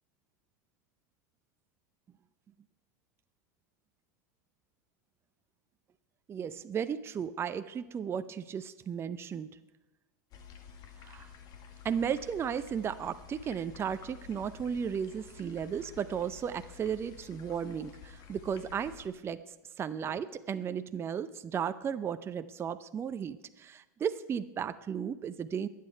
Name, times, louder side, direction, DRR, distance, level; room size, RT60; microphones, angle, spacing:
voice 1, 6.3-9.5 11.0-11.3 11.8-19.4 19.8-25.7, right 7 dB, 25° right, 11 dB, 0.6 m, -35 dB
sound 1, 10.3-19.1, left 7 dB, 45° left, 2.1 m, -51 dB
22.5 x 8.5 x 4.5 m, 1.1 s
hypercardioid pair, 90°, 9 cm